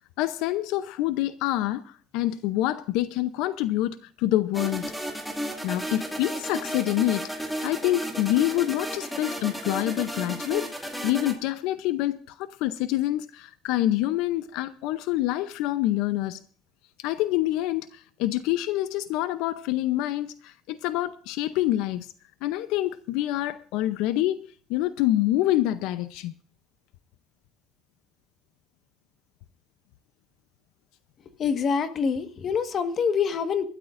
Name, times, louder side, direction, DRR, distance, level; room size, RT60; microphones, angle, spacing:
voice 1, 0.2-4.9 5.6-10.7 11.0-16.4 17.0-22.1 22.4-26.3, left 15 dB, 80° left, 0.6 m, -26 dB
sound 1, 4.5-11.3, equal, ahead, 2.3 m, -33 dB
voice 2, 31.4-33.6, left 6 dB, 35° left, 1.5 m, -25 dB
26.0 x 13.0 x 2.6 m
cardioid pair, 160°, 0 cm